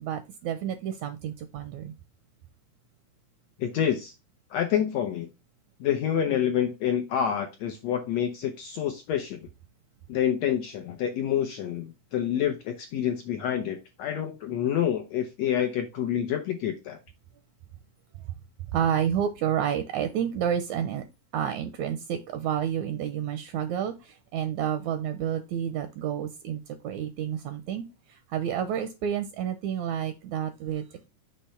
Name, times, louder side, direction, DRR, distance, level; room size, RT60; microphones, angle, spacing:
voice 1, 0.0-1.9 18.2-18.3 18.7-21.1 21.3-31.1, right 9 dB, 80° right, 1.7 m, -30 dB
voice 2, 3.6-4.1 4.5-5.3 5.8-9.4 10.1-17.0, left 9 dB, 80° left, 1.5 m, -27 dB
6.6 x 3.1 x 5.6 m
omnidirectional pair, 4.0 m